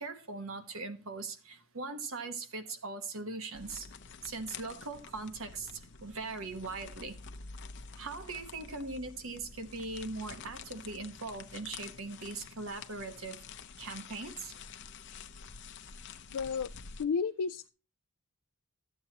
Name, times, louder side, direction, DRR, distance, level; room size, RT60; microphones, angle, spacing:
voice 1, 0.0-3.9 4.2-7.2 7.9-13.4 13.8-14.6, right 3 dB, 65° right, 1.2 m, -40 dB
sound 1, 3.5-17.0, left 5 dB, 55° left, 0.7 m, -49 dB
voice 2, 16.3-16.7 17.0-17.7, left 5 dB, 85° left, 0.4 m, -32 dB
13.0 x 8.0 x 2.9 m
head